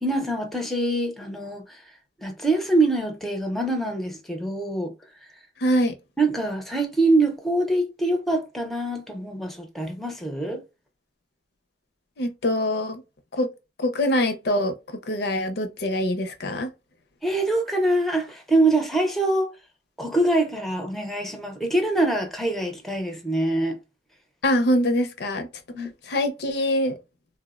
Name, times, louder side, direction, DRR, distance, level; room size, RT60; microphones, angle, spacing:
voice 1, 0.0-1.8 2.2-4.9 6.2-10.6 17.2-19.5 20.0-23.8 25.7-25.9, right 2 dB, ahead, 0.5 m, -24 dB
voice 2, 5.6-5.9 12.2-13.0 13.3-13.5 13.8-16.7 24.4-25.5 25.8-27.0, left 1 dB, 65° left, 0.6 m, -24 dB
3.3 x 2.0 x 2.3 m
head